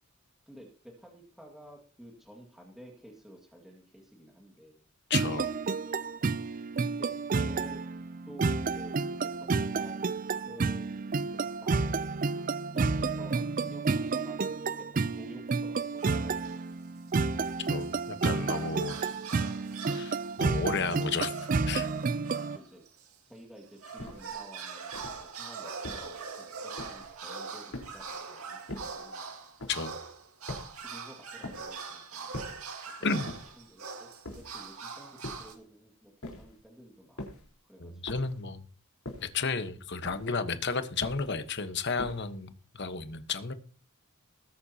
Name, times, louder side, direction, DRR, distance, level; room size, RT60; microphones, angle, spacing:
voice 1, 0.5-4.8 6.8-7.8 8.2-9.0 9.2-11.7 12.7-16.6 22.2-22.8 23.3-29.3 30.7-32.4 32.9-37.3 37.6-38.2, right 1 dB, ahead, 2.1 m, -52 dB
voice 2, 5.1-5.5 17.7-19.0 19.9-21.3 21.7-21.9 29.7-30.0 33.0-33.3 37.8-38.6 39.3-43.5, left 4 dB, 55° left, 1.2 m, -32 dB
sound 1, 5.1-22.6, right 4 dB, 40° right, 0.4 m, -30 dB
sound 2, 15.8-16.6 17.1-23.2 23.6-35.5, right 5 dB, 85° right, 2.2 m, -43 dB
sound 3, 24.0-24.4 24.9-25.3 25.8-26.2 26.8-27.2 27.7-28.2 28.7-29.1 29.6-29.9 30.5-30.9 31.4-31.8 32.3-32.7 33.3-33.7 34.2-34.7 35.2-35.6 36.2-36.6 37.2-37.5 38.1-38.5 39.0-39.4 40.0-40.4 41.0-41.4 42.0-42.4, left 1 dB, 85° left, 4.1 m, -43 dB
20.0 x 9.8 x 2.9 m
head